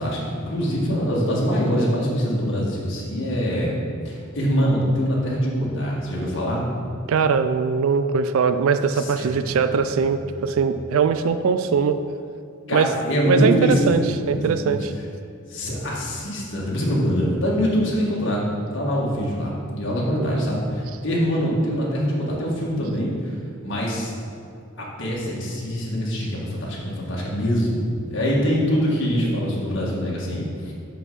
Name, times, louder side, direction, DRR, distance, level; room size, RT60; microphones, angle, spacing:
voice 1, 0.0-6.6 8.9-10.6 12.7-13.9 14.3-14.8 15.5-18.5 18.7-23.3 23.6-24.1 24.8-27.8 28.1-30.7, equal, 60° left, -4 dB, 1.7 m, -24 dB
voice 2, 7.1-12.0 12.7-12.9 13.2-14.0 14.3-14.9 20.2-20.5, right 5 dB, 85° right, 10 dB, 0.3 m, -21 dB
6.3 x 5.8 x 5.4 m, 2.4 s
head